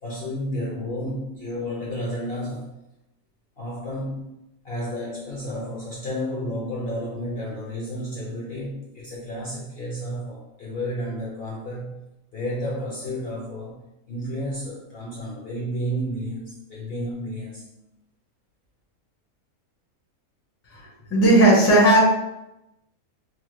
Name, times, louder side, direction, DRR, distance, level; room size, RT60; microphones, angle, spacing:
voice 1, 0.0-2.7 3.6-4.3 4.6-11.9 12.3-13.8 14.1-17.7, equal, 55° left, -6 dB, 0.7 m, -31 dB
voice 2, 20.7-22.0, right 1 dB, 20° left, -5 dB, 0.4 m, -16 dB
3.0 x 2.2 x 2.9 m, 0.91 s
omnidirectional pair, 1.5 m